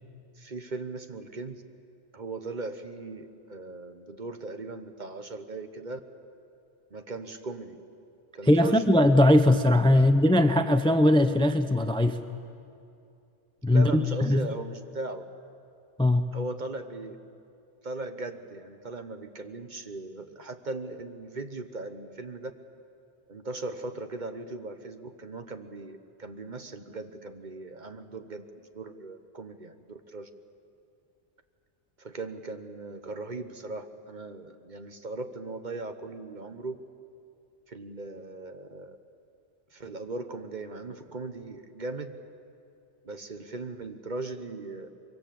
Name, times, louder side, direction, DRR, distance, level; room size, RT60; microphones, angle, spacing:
voice 1, 0.4-1.6 2.1-6.0 6.9-7.8 8.3-8.9 9.9-10.1 13.7-15.2 16.3-17.1 17.8-22.5 23.3-28.4 28.7-30.3 32.0-36.7 37.7-39.0 39.7-42.2 43.0-44.9, right 3 dB, 45° right, 8 dB, 1.2 m, -38 dB
voice 2, 8.5-12.2 13.6-13.9 14.2-14.5 16.0-16.2, left 1 dB, 5° left, 9 dB, 0.6 m, -20 dB
24.0 x 23.5 x 7.7 m, 2.6 s
omnidirectional pair, 1.2 m